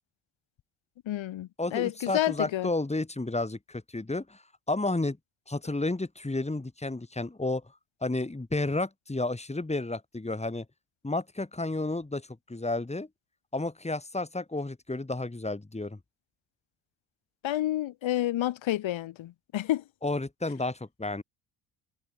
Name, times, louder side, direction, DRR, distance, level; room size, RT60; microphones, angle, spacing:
voice 1, 1.1-2.7 17.4-19.8, left 13 dB, 75° left, 5.3 m, -29 dB
voice 2, 1.6-4.4 4.7-5.2 5.5-7.6 8.0-10.6 11.0-13.1 13.5-16.0 20.0-21.2, left 2 dB, 15° left, 4.3 m, -31 dB
supercardioid pair, 65°, 47 cm